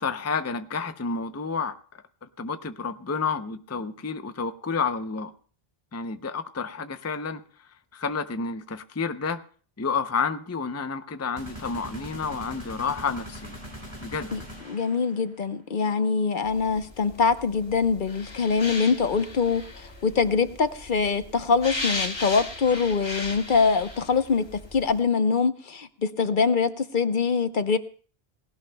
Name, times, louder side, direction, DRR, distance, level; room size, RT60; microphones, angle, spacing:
voice 1, 0.0-1.7 2.4-5.3 5.9-7.4 7.9-9.4 9.8-13.6 14.0-14.3, left 5 dB, 20° left, 10 dB, 0.5 m, -30 dB
sound 1, 11.4-15.3, equal, 25° right, 6.0 m, -41 dB
voice 2, 14.7-24.4 24.7-27.8, left 5 dB, 55° left, 10 dB, 0.9 m, -24 dB
sound 2, 16.5-25.0, left 2 dB, 85° left, 2.7 m, -37 dB
19.0 x 17.0 x 2.2 m, 0.42 s
omnidirectional pair, 1.0 m